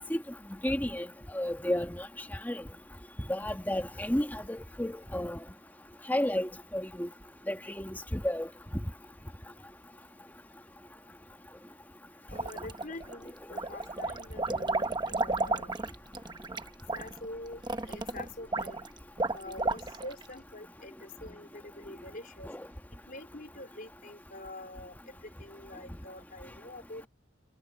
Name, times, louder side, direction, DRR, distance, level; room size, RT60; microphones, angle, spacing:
voice 1, 0.6-1.1 1.3-2.1 2.4-2.6 3.3-5.4 6.1-7.1 7.5-8.5 22.5-22.6, left 1 dB, 10° left, 1.5 m, -32 dB
voice 2, 12.3-15.7 16.9-18.8 19.3-22.5 22.9-27.1, left 2 dB, 45° left, 4.2 m, -45 dB
sound 1, 12.3-13.1 13.5-20.2, right 3 dB, 20° right, 0.9 m, -33 dB
head